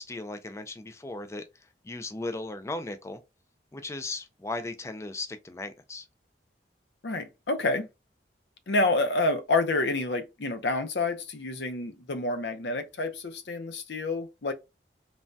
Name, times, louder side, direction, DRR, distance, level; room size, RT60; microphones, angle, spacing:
voice 1, 0.0-1.4 1.8-3.2 3.7-6.1, left 2 dB, 15° left, 0.3 m, -36 dB
voice 2, 7.0-7.9 8.7-14.5, left 2 dB, 70° left, 0.6 m, -28 dB
3.2 x 2.1 x 2.6 m
head